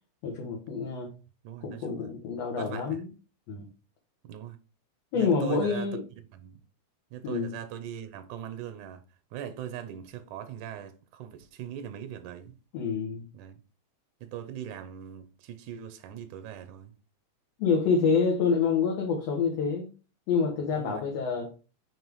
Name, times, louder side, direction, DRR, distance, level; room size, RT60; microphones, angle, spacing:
voice 1, 0.2-1.1 1.6-3.1 3.5-3.7 5.1-6.0 7.2-7.5 12.7-13.2 17.6-19.9 20.3-21.5, left 5 dB, 65° left, 2.2 m, -27 dB
voice 2, 1.4-2.1 2.6-3.0 4.2-4.6 5.1-5.9 6.3-6.6 7.1-9.0 9.3-12.6 13.3-13.6 14.2-16.9 20.7-21.1, right 10 dB, 90° right, 2.2 m, -40 dB
7.1 x 3.2 x 4.6 m
omnidirectional pair, 3.3 m